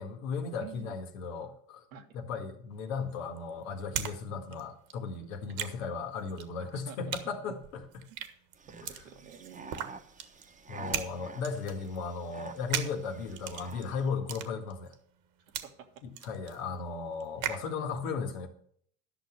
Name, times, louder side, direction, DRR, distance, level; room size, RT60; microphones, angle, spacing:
voice 1, 0.0-1.8 2.1-7.8 10.7-14.9 16.0-18.5, left 5 dB, 80° left, 1.9 m, -36 dB
voice 2, 0.6-1.0 1.9-2.2 6.6-7.0 7.5-7.6 8.1-8.2 8.7-9.7 15.6-15.9, right 8 dB, 85° right, 1.7 m, -49 dB
sound 1, 2.7-4.2 4.4-17.7, right 10 dB, 60° right, 1.5 m, -39 dB
sound 2, 8.6-14.1, right 4 dB, 20° right, 1.1 m, -48 dB
11.5 x 6.3 x 6.4 m
hypercardioid pair, 80°, 39 cm